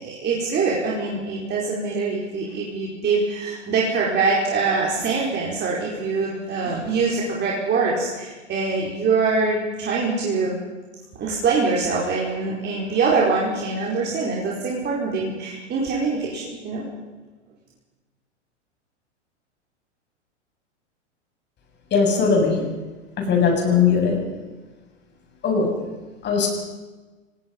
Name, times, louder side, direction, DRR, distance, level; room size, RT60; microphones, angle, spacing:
voice 1, 0.0-10.6 11.2-16.9, right 4 dB, 30° right, -4 dB, 5.0 m, -24 dB
voice 2, 21.9-22.6 23.3-24.2 25.4-25.7 26.2-26.5, left 5 dB, 30° left, 2 dB, 7.5 m, -19 dB
29.5 x 18.5 x 5.5 m, 1.2 s
hypercardioid pair, 100°, 36 cm